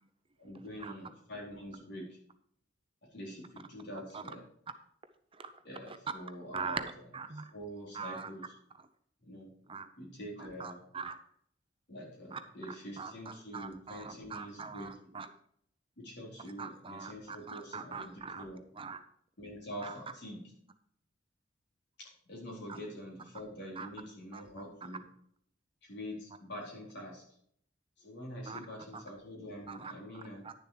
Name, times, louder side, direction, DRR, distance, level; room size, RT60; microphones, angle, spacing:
voice 1, 0.4-2.2 3.0-4.4 5.6-6.9 7.3-8.5 9.2-9.5 10.0-10.8 11.9-14.9 16.0-18.6 19.4-20.4 22.0-25.0 25.8-27.2 28.0-30.5, equal, 60° left, -3 dB, 4.1 m, -45 dB
voice 2, 4.0-4.3 5.3-5.5 5.9-6.0 6.5-7.5 7.9-8.3 8.8-8.9 9.7-9.9 10.4-11.2 12.3-15.3 16.4-19.0 19.8-20.0 22.7-22.8 23.8-23.9 24.3-24.4 24.8-24.9 28.4-28.6 28.9-29.1 29.7-30.5, right 5 dB, 30° right, 10 dB, 0.7 m, -43 dB
11.0 x 7.0 x 4.9 m, 0.65 s
head